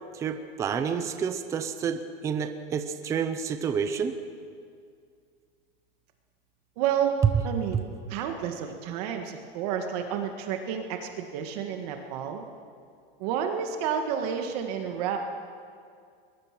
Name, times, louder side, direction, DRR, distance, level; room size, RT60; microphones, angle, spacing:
voice 1, 0.1-4.1, right 6 dB, 10° right, 9 dB, 0.6 m, -29 dB
voice 2, 6.8-7.1 7.4-7.8 8.1-12.4 13.2-15.2, right 8 dB, 40° right, 4 dB, 1.7 m, -30 dB
22.5 x 21.5 x 6.0 m, 2.2 s
supercardioid pair, 170°, 30 cm